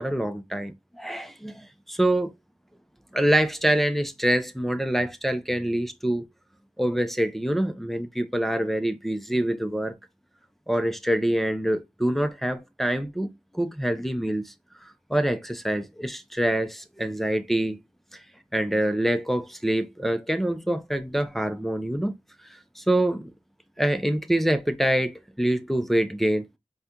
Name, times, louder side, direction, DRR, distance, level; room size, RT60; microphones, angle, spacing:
voice 1, 0.0-2.3 3.1-6.2 6.8-9.9 10.7-14.5 15.1-17.8 18.5-22.1 22.8-23.3 23.8-26.4, right 1 dB, ahead, 0.6 m, -25 dB
4.8 x 2.3 x 2.8 m
wide cardioid pair, 45°, 13 cm